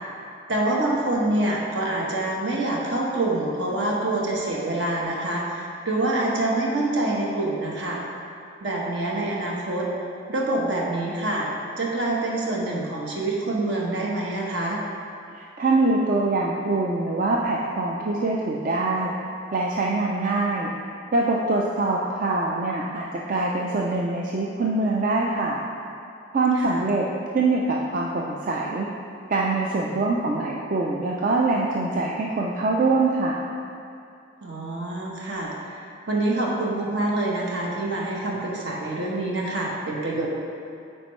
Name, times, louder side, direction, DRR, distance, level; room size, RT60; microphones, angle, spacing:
voice 1, 0.5-8.0 8.6-9.9 10.3-11.5 11.8-14.8 26.6-26.8 34.4-40.3, right 2 dB, 70° right, -3 dB, 1.1 m, -26 dB
voice 2, 15.3-19.1 19.5-20.7 21.1-25.6 26.3-27.1 27.3-28.9 29.3-33.4, right 3 dB, 45° right, -3 dB, 0.4 m, -24 dB
9.1 x 4.4 x 3.1 m, 2.5 s
head